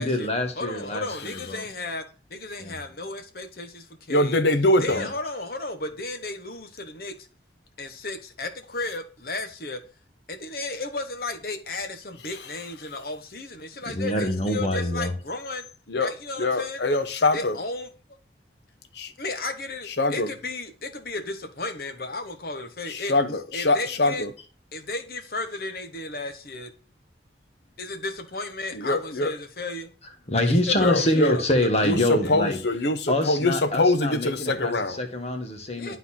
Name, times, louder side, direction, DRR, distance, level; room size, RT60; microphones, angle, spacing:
voice 1, 0.0-1.6 2.6-2.8 4.9-5.1 13.9-15.1 30.3-32.6 33.1-36.0, left 1 dB, 35° left, 1.4 m, -25 dB
voice 2, 0.6-2.0 2.3-4.4 4.8-7.3 7.8-9.8 10.3-15.7 16.0-16.8 17.3-17.9 19.2-23.1 23.5-24.2 24.7-26.7 27.8-29.9 30.4-31.4 32.2-32.4 35.8-36.0, left 2 dB, 55° left, 1.2 m, -34 dB
voice 3, 4.1-5.0 15.9-16.1 16.4-17.6 18.9-19.1 19.9-20.3 22.9-24.3 28.7-29.3 30.8-31.3 31.8-35.0, left 2 dB, 70° left, 0.9 m, -23 dB
11.5 x 4.0 x 2.7 m
head